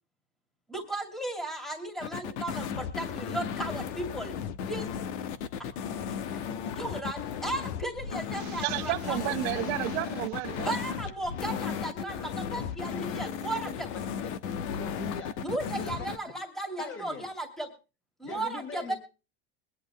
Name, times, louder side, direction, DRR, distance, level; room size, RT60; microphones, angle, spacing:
voice 1, 0.7-4.3 4.7-5.1 5.6-5.7 6.1-6.2 6.6-9.2 10.6-13.9 15.4-17.7 18.2-18.9, right 2 dB, ahead, 2.4 m, -35 dB
sound 1, 2.0-16.2, left 7 dB, 80° left, 1.3 m, -35 dB
voice 2, 8.3-10.8, right 19 dB, 75° right, 1.2 m, -32 dB
voice 3, 14.7-15.4 15.7-16.1 16.8-17.3 18.2-19.0, left 4 dB, 40° left, 5.1 m, -42 dB
22.0 x 10.5 x 3.1 m
supercardioid pair, 135°, 33 cm